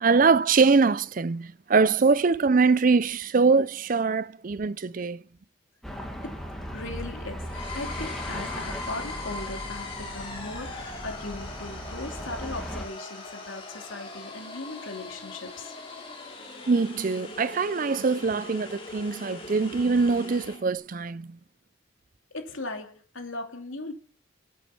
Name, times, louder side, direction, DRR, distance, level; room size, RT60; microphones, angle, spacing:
voice 1, 0.0-5.2 16.7-21.4, right 4 dB, 40° right, 0.4 m, -23 dB
sound 1, 5.8-12.8, equal, ahead, 2.1 m, -37 dB
voice 2, 6.7-15.7 22.3-23.9, left 2 dB, 75° left, 2.8 m, -38 dB
sound 2, 7.4-20.6, left 3 dB, 25° left, 2.9 m, -40 dB
10.5 x 8.3 x 7.2 m
head